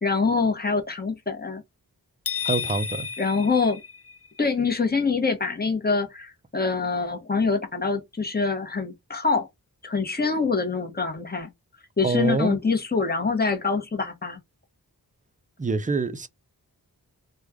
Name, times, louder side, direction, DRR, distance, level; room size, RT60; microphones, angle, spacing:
voice 1, 0.0-1.6 3.2-3.8 4.4-9.5 9.8-11.5 12.0-14.4, left 4 dB, 25° left, 1.0 m, -25 dB
sound 1, 2.3-4.4, left 8 dB, 40° left, 0.4 m, -32 dB
voice 2, 2.4-3.1 12.0-12.6 15.6-16.3, right 3 dB, 20° right, 0.4 m, -26 dB
3.2 x 2.2 x 3.5 m
wide cardioid pair, 60°, 38 cm